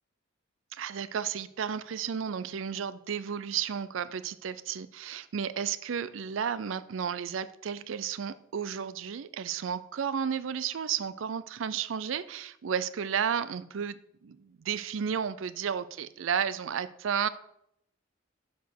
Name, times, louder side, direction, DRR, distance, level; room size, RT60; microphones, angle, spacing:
voice 1, 0.7-17.3, right 7 dB, 75° right, 0.4 m, -33 dB
6.8 x 5.2 x 5.9 m
head